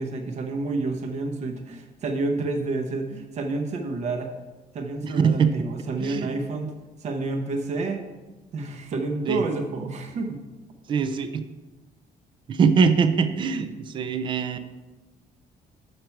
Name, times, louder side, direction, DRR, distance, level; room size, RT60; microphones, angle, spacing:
voice 1, 0.0-4.3 4.7-6.7 7.0-8.0 8.5-10.4 14.5-14.6, right 3 dB, 45° right, 4 dB, 0.9 m, -29 dB
voice 2, 5.0-5.5 6.0-6.3 9.3-9.4 10.9-11.4 12.5-14.6, right 6 dB, 30° right, 10 dB, 0.4 m, -22 dB
6.6 x 5.8 x 4.5 m, 1.2 s
cardioid pair, 175°, 16 cm